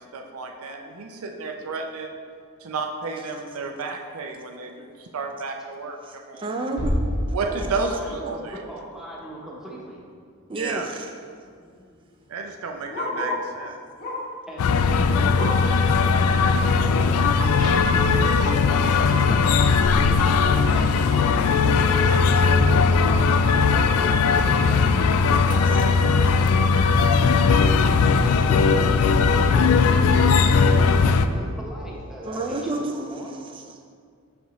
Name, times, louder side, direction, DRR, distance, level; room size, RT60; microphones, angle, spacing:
voice 1, 0.0-2.2 2.6-6.5 7.3-8.6 10.6-10.9 12.3-13.8, right 4 dB, 80° right, 4 dB, 0.5 m, -32 dB
voice 2, 6.0-7.4 10.5-11.1 25.7-25.8 32.2-33.9, right 2 dB, 25° right, 3 dB, 0.3 m, -31 dB
sound 1, 6.8-8.7, equal, 55° right, 1.1 m, -28 dB
voice 3, 7.5-10.0 14.5-19.4 20.1-21.2 21.5-23.2 23.7-26.3 27.6-27.7 28.0-33.3, right 1 dB, ahead, -4 dB, 0.8 m, -39 dB
Bark, 9.8-10.0 10.4-10.5 10.7-13.5 14.0-14.4 14.8-15.8 16.2-16.3 16.7-16.8 17.5-17.6, left 2 dB, 40° left, 0.8 m, -33 dB
sound 2, 14.6-31.3, left 4 dB, 85° left, 0.3 m, -19 dB
6.6 x 4.9 x 3.0 m, 2.2 s
head